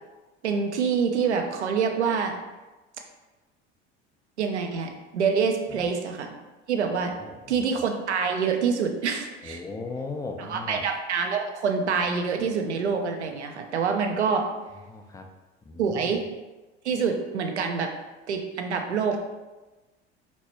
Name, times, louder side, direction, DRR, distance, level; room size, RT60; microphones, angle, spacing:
voice 1, 0.4-2.3 4.4-6.4 6.7-7.1 7.5-9.6 10.4-14.5 15.8-16.2 16.8-17.9 18.3-19.2, right 6 dB, 90° right, 4 dB, 0.6 m, -26 dB
voice 2, 7.2-7.8 9.4-10.8 14.9-15.3 15.7-16.2, left 3 dB, 10° left, 4 dB, 0.5 m, -38 dB
4.6 x 4.0 x 2.8 m, 1.1 s
hypercardioid pair, 70°, 33 cm